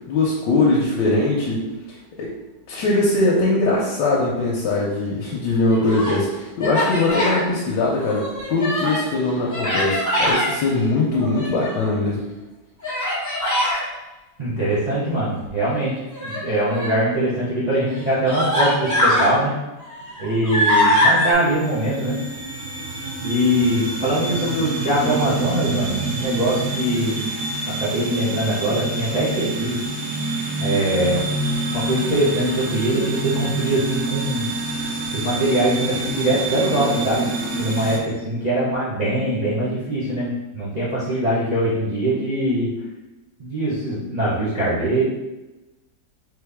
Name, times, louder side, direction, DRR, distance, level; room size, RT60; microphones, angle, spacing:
voice 1, 0.1-1.6 2.2-2.3 2.7-12.2, left 2 dB, 85° left, -4 dB, 1.3 m, -21 dB
Human voice, 5.6-6.2 6.6-7.4 7.9-9.1 9.5-10.5 11.1-11.9 12.8-13.8 16.1-17.0 17.7-17.8 18.2-19.3 19.8-21.3, left 1 dB, 10° left, 1.0 m, -22 dB
voice 2, 14.4-19.5 20.2-22.2 23.2-27.2 27.8-29.8 30.6-31.3 31.7-34.5 35.1-37.3 37.5-42.7 43.4-45.0, right 1 dB, 30° right, -11 dB, 0.9 m, -22 dB
sound 1, 20.0-38.0, right 2 dB, 60° right, 0.7 m, -28 dB
3.9 x 3.4 x 3.4 m, 1.0 s
omnidirectional pair, 1.9 m